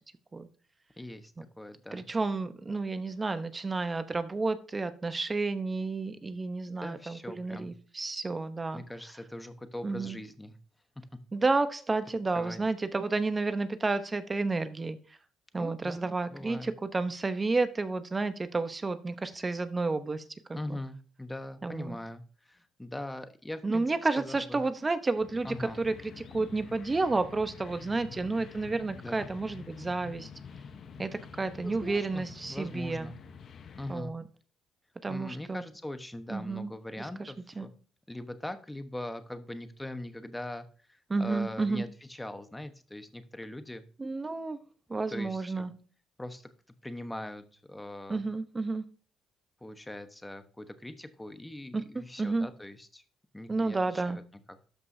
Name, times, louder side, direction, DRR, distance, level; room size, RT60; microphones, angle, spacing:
voice 1, 1.0-1.3 1.6-2.1 6.8-7.7 8.7-10.6 12.3-12.6 15.6-16.0 16.3-16.7 20.5-23.9 24.2-24.6 25.4-25.8 29.0-29.3 31.6-33.2 33.8-34.1 35.1-37.7 38.1-43.8 45.1-45.7 46.2-46.4 46.8-48.3 49.6-53.0 53.3-54.2 54.5-54.6, left 1 dB, 10° left, 9 dB, 1.1 m, -41 dB
voice 2, 1.9-8.8 9.8-10.2 11.3-15.0 15.5-20.2 20.5-20.8 21.6-22.0 23.6-30.3 31.0-33.1 33.9-34.2 35.0-35.6 36.3-36.7 37.0-37.7 41.1-41.8 44.0-44.6 44.9-45.7 48.1-48.8 51.7-52.5 53.5-54.2, right 3 dB, 25° right, 11 dB, 0.9 m, -31 dB
sound 1, 25.1-34.0, left 6 dB, 60° left, 1.0 m, -47 dB
12.5 x 5.4 x 2.8 m, 0.39 s
supercardioid pair, 65°, 0 cm